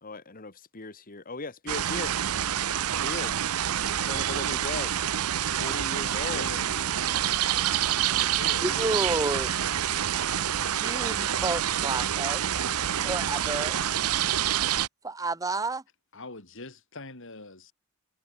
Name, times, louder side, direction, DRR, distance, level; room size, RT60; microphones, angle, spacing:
voice 1, 0.0-2.1 2.9-3.3 3.9-5.0 5.3-6.5, left 3 dB, 40° left, 1.7 m, -38 dB
sound 1, 1.7-14.9, right 10 dB, 85° right, 0.7 m, -27 dB
voice 2, 6.3-7.2 8.3-9.0 16.1-17.7, left 2 dB, 60° left, 3.9 m, -43 dB
voice 3, 8.6-9.6 10.6-12.4 13.0-13.8 15.0-15.8, right 2 dB, 15° right, 0.7 m, -31 dB
head